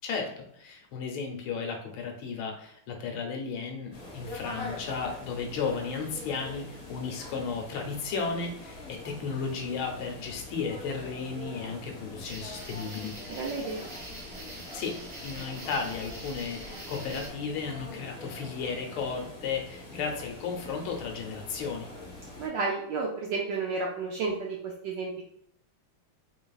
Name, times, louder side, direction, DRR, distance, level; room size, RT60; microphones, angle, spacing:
voice 1, 0.0-13.1 14.7-14.9 15.2-21.9, left 5 dB, 75° left, 2 dB, 1.5 m, -34 dB
sound 1, 3.9-22.5, left 2 dB, 40° left, 0.8 m, -44 dB
sound 2, 12.2-17.3, right 1 dB, 50° right, 1.1 m, -44 dB
voice 2, 13.3-13.9 22.4-25.3, right 4 dB, 80° right, -2 dB, 1.0 m, -32 dB
4.0 x 3.6 x 2.3 m, 0.69 s
omnidirectional pair, 2.4 m